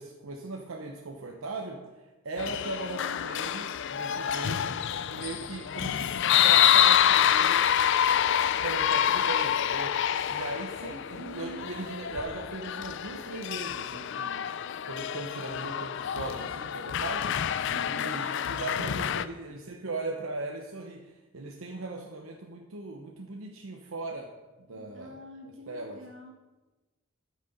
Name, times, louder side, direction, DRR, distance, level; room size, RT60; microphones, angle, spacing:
voice 1, 0.0-4.8 5.1-7.6 8.6-9.9 10.3-17.3 17.9-24.3 24.6-25.2 25.4-26.0, right 2 dB, 85° right, 1 dB, 0.9 m, -38 dB
sound 1, 2.4-19.2, left 9 dB, 60° left, 0.4 m, -27 dB
Trumpet, 2.7-9.1, right 3 dB, 25° left, 1.9 m, -54 dB
Bird vocalization bird call bird song, 6.5-12.2, equal, 25° right, 3.7 m, -57 dB
voice 2, 11.2-11.8 17.7-18.2 24.7-26.3, right 1 dB, 65° right, 2 dB, 1.7 m, -45 dB
12.5 x 6.3 x 5.3 m, 1.1 s
head